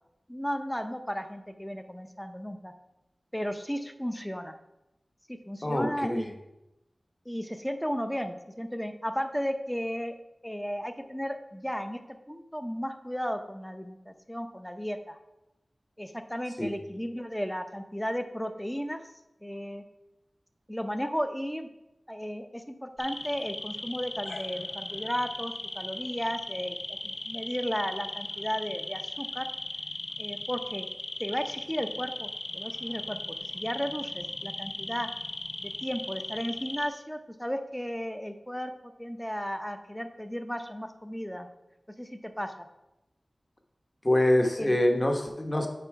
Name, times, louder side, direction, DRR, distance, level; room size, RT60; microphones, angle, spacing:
voice 1, 0.3-2.7 3.3-4.5 5.3-6.4 7.3-10.2 10.4-12.0 12.3-15.2 16.0-19.0 19.4-19.8 20.7-21.7 22.1-29.5 30.2-30.9 31.2-33.2 33.5-35.1 35.6-41.5 42.0-42.7 44.6-44.8, equal, 5° left, 7 dB, 0.5 m, -34 dB
voice 2, 5.6-6.2 16.6-16.8 44.0-45.7, left 1 dB, 25° left, 3 dB, 0.9 m, -25 dB
sound 1, 23.0-36.9, left 2 dB, 65° left, 0.5 m, -37 dB
6.8 x 4.2 x 4.6 m, 0.93 s
wide cardioid pair, 85°, 0 cm